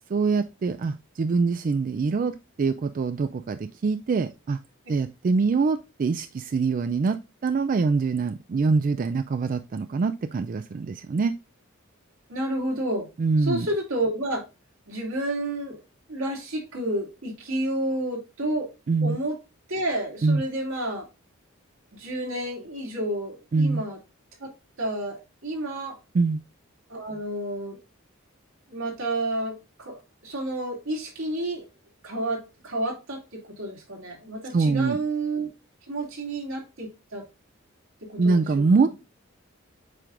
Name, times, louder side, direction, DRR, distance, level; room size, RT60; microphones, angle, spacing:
voice 1, 0.1-4.6 4.9-7.2 7.4-11.3 13.2-13.7 18.9-19.2 20.2-20.4 23.5-23.8 26.1-26.4 34.5-35.0 38.2-38.9, right 4 dB, 40° right, 0.3 m, -24 dB
voice 2, 12.3-13.1 13.4-14.4 14.9-15.8 16.1-18.7 19.0-19.4 19.7-21.1 21.9-24.0 24.4-24.5 24.8-26.0 26.9-27.8 28.7-31.7 32.0-35.5 35.9-37.2 38.1-38.9, right 1 dB, 85° right, 2.5 m, -30 dB
7.5 x 5.0 x 2.5 m
head